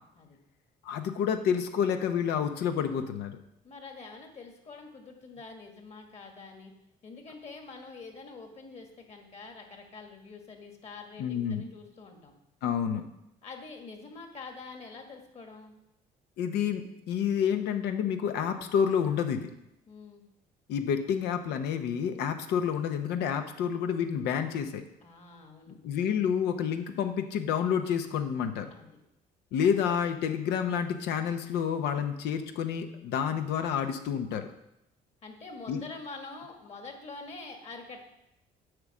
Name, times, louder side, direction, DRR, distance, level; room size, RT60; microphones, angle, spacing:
voice 1, 0.8-3.4 11.2-11.6 12.6-13.1 16.4-19.5 20.7-24.8 25.8-28.7 29.5-34.5 35.7-35.8, left 8 dB, 80° left, 7 dB, 0.9 m, -29 dB
voice 2, 3.6-6.7 7.0-12.3 13.4-15.7 19.9-20.2 25.0-25.8 28.7-29.0 35.2-38.0, left 3 dB, 40° left, 3 dB, 2.0 m, -46 dB
8.0 x 5.2 x 7.2 m, 0.84 s
cardioid pair, 110°, 17 cm